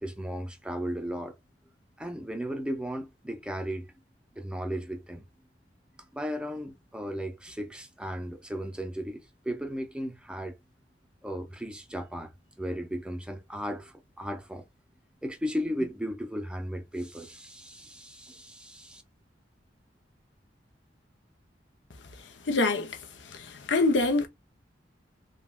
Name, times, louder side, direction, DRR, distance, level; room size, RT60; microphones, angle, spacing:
voice 1, 0.0-1.3 2.0-3.9 4.4-5.2 6.1-10.6 11.2-14.6 15.2-19.0, equal, 5° right, 0.5 m, -35 dB
voice 2, 22.5-23.0 23.3-24.3, left 3 dB, 80° left, 0.7 m, -25 dB
3.3 x 2.2 x 2.3 m
head